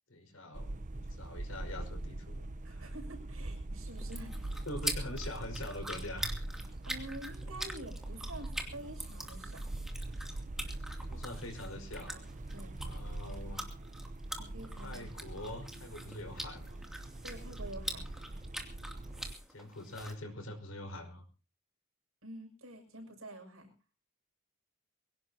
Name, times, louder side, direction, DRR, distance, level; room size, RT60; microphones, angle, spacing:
voice 1, 0.1-2.9 4.7-6.3 11.0-12.2 12.8-13.6 14.8-16.8 19.5-21.2, left 1 dB, 80° left, 3 dB, 5.3 m, -44 dB
sound 1, 0.5-19.3, right 2 dB, 40° right, 0.7 m, -42 dB
voice 2, 2.6-4.9 6.8-9.6 12.5-12.8 14.4-15.0 17.2-18.1 22.2-23.7, right 1 dB, 85° right, 3 dB, 6.7 m, -48 dB
sound 2, 4.0-20.1, right 1 dB, ahead, 2.7 m, -44 dB
23.0 x 17.5 x 2.9 m, 0.36 s
head